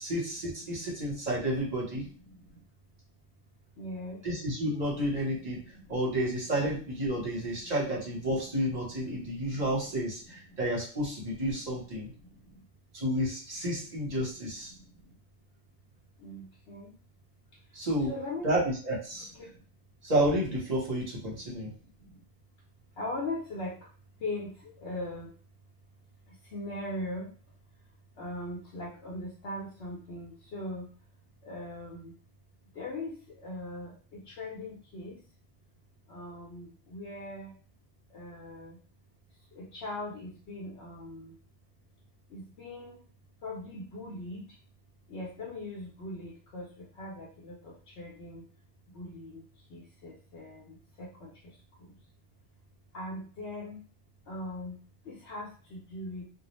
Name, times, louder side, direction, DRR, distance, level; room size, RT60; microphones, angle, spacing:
voice 1, 0.0-2.1 4.2-12.1 12.9-14.7 17.7-18.1 18.4-19.3 20.0-21.7, right 1 dB, 40° right, -3 dB, 1.0 m, -31 dB
voice 2, 2.0-2.6 3.8-4.2 5.7-5.9 9.1-9.7 10.5-10.6 12.0-12.6 14.7-15.0 16.2-16.9 18.1-18.5 19.2-19.6 21.5-22.2 23.0-23.9 24.2-25.3 26.3-27.3 28.2-30.9 31.4-32.1 32.7-35.2 36.1-37.5 38.1-38.8 39.5-41.4 42.3-43.0 43.4-44.6 45.1-48.5 48.9-49.4 49.7-52.0 52.9-53.8 54.3-56.2, left 1 dB, 75° left, -5 dB, 0.9 m, -41 dB
2.3 x 2.1 x 3.0 m, 0.40 s
omnidirectional pair, 1.1 m